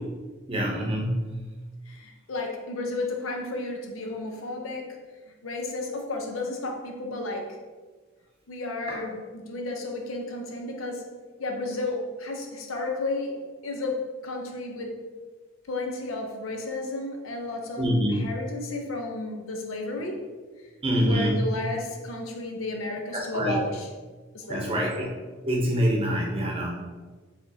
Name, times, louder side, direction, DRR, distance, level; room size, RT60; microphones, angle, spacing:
voice 1, 0.5-1.3 8.9-9.0 17.8-18.1 20.8-21.5 23.1-23.6 24.5-25.1 25.5-26.8, equal, 25° right, -1 dB, 0.8 m, -25 dB
voice 2, 1.9-5.0 5.4-7.6 8.5-11.1 11.4-15.0 15.7-17.8 18.1-20.3 20.9-23.9 24.3-24.9, left 2 dB, 80° left, 2 dB, 0.7 m, -33 dB
4.9 x 3.5 x 2.8 m, 1.4 s
head